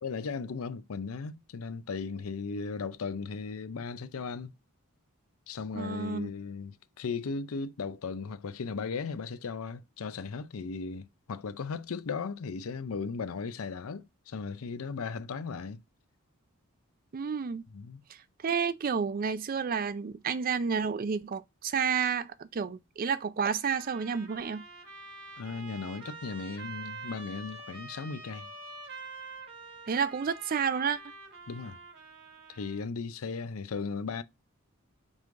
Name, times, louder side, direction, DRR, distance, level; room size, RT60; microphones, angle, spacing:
voice 1, 0.0-4.5 5.5-15.8 17.7-18.0 25.4-28.5 31.5-31.8 32.5-34.2, left 5 dB, 80° left, 0.5 m, -37 dB
voice 2, 5.7-6.3 17.1-17.6 18.4-24.6 29.9-31.0, right 6 dB, 40° right, 0.4 m, -30 dB
Trumpet, 23.7-32.9, right 3 dB, 55° right, 1.5 m, -46 dB
5.3 x 3.2 x 2.5 m
head